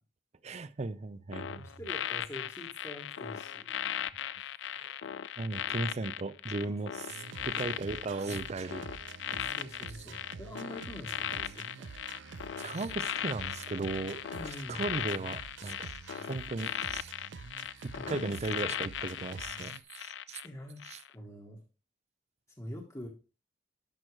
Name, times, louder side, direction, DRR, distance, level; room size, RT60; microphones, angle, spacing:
voice 1, 0.4-1.7 4.7-5.0 5.4-8.8 12.6-17.1 17.8-20.4 20.8-21.0, right 3 dB, 35° right, 0.5 m, -37 dB
sound 1, 1.3-20.5 20.8-21.1, left 10 dB, 75° left, 0.4 m, -38 dB
voice 2, 1.5-3.7 6.6-6.8 7.4-7.5 9.3-11.9 14.3-14.8 17.9-18.3 20.4-20.8 21.1-21.6 22.6-23.1, left 1 dB, 15° left, 1.3 m, -45 dB
sound 2, 7.1-19.8, right 5 dB, 85° right, 0.6 m, -47 dB
11.0 x 6.0 x 3.2 m
head